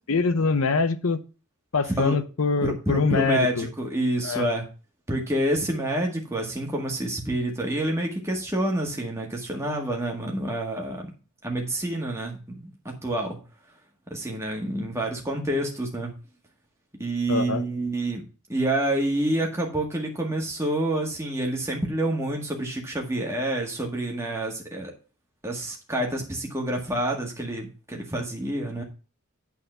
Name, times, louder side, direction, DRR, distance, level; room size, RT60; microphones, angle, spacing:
voice 1, 0.1-1.2 1.7-3.7 4.2-4.5 17.3-17.6, left 4 dB, 70° left, 10 dB, 0.7 m, -24 dB
voice 2, 2.6-4.6 5.1-11.1 11.4-12.7 13.0-13.4 14.1-16.1 17.0-18.2 18.5-24.9 25.4-28.8, right 1 dB, 10° right, 0 dB, 1.8 m, -28 dB
8.6 x 4.2 x 6.7 m, 0.35 s
head